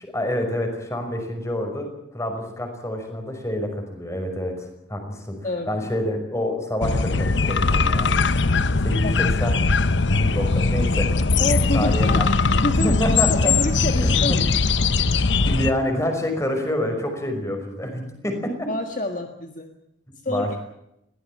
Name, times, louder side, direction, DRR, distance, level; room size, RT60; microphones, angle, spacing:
voice 1, 0.0-4.5 4.9-5.3 5.7-8.1 8.8-9.6 10.1-11.1 11.7-12.5 12.8-13.5 14.0-14.4 15.4-18.7 20.3-20.6, left 1 dB, 15° left, 5 dB, 5.5 m, -27 dB
voice 2, 5.4-5.8 9.0-9.3 11.4-13.0 13.3-14.4 14.8-15.0 18.7-19.7 20.2-20.6, left 2 dB, 45° left, 6 dB, 1.8 m, -28 dB
sound 1, 6.8-15.7, left 3 dB, 75° left, 1.0 m, -20 dB
22.5 x 17.5 x 8.7 m, 0.83 s
head